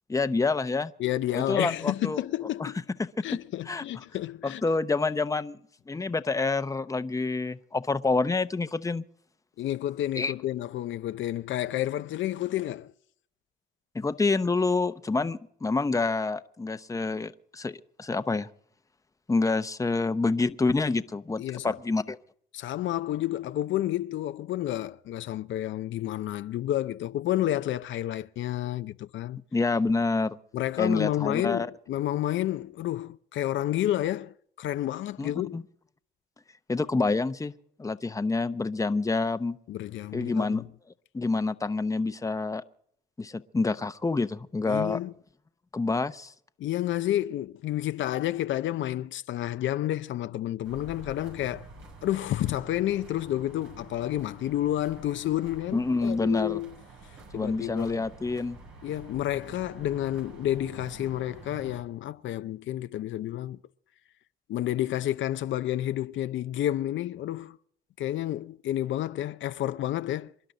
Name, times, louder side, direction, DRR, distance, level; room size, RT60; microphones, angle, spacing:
voice 1, 0.1-0.9 1.3-2.2 2.6-2.7 3.0-3.4 3.7-3.8 4.4-5.6 5.9-9.0 10.2-10.3 13.9-18.5 19.3-22.2 29.5-30.4 30.8-31.7 35.2-35.6 36.7-37.5 37.8-39.6 40.1-40.6 41.1-42.6 43.2-45.0 45.7-46.3 55.7-56.6 57.3-58.6, left 3 dB, 15° left, 0.8 m, -27 dB
voice 2, 1.0-2.8 3.2-4.6 9.6-12.9 21.4-21.7 22.5-29.4 30.5-35.6 39.7-40.6 44.7-45.1 46.6-51.7 52.0-56.7 57.3-58.1 58.8-63.6 64.5-67.6 68.0-70.3, left 13 dB, 70° left, 0.6 m, -30 dB
sound 1, 50.6-61.8, right 3 dB, 85° right, 6.8 m, -48 dB
27.5 x 11.5 x 3.9 m
cardioid pair, 90°, 20 cm